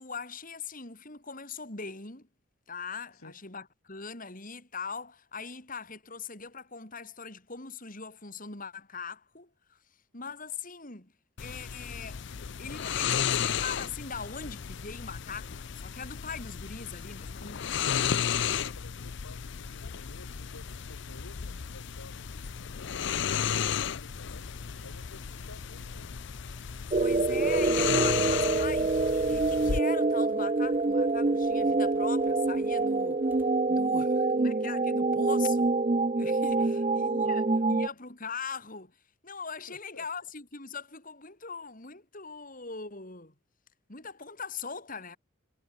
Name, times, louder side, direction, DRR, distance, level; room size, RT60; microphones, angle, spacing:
voice 1, 0.0-2.3 2.7-9.8 10.1-11.1 11.4-12.3 12.6-17.7 27.0-33.3 33.7-35.7 36.2-43.3 43.9-45.2, left 5 dB, 40° left, 3.8 m, -41 dB
sound 1, 11.4-29.8, left 8 dB, 55° left, 0.5 m, -34 dB
voice 2, 17.6-18.2 18.6-22.2 22.9-24.5 24.8-26.1 36.6-37.8 39.6-40.1, left 2 dB, 85° left, 5.4 m, -52 dB
sound 2, 19.9-35.0 35.6-36.8, equal, 10° right, 3.0 m, -57 dB
sound 3, 26.9-37.9, right 3 dB, 30° right, 0.6 m, -26 dB
head